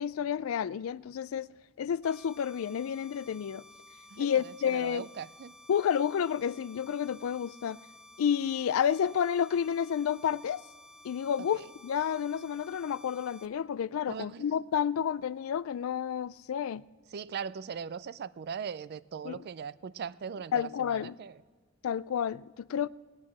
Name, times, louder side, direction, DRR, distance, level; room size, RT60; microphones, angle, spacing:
voice 1, 0.0-1.5 1.8-3.6 4.2-5.1 5.7-7.8 8.2-10.6 11.0-16.8 19.2-19.4 20.5-21.2 21.8-22.9, left 8 dB, 75° left, 0.3 m, -30 dB
sound 1, 2.0-13.5, left 1 dB, 5° right, 0.6 m, -54 dB
voice 2, 4.1-5.5 11.5-11.6 14.1-14.5 17.1-21.3, right 6 dB, 50° right, 0.4 m, -40 dB
17.0 x 9.7 x 7.2 m
head